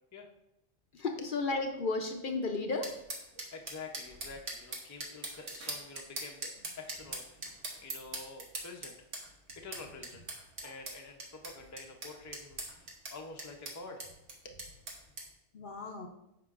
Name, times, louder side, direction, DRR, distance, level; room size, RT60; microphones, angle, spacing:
voice 1, 0.9-2.9 15.5-16.1, left 3 dB, 55° left, 4 dB, 0.7 m, -33 dB
sound 1, 2.8-15.3, right 2 dB, 70° right, 1.5 m, -42 dB
voice 2, 3.3-9.0 9.6-10.2 10.6-14.1 14.4-14.6, left 3 dB, 20° left, 2 dB, 0.5 m, -48 dB
9.3 x 5.6 x 2.5 m, 0.86 s
omnidirectional pair, 1.2 m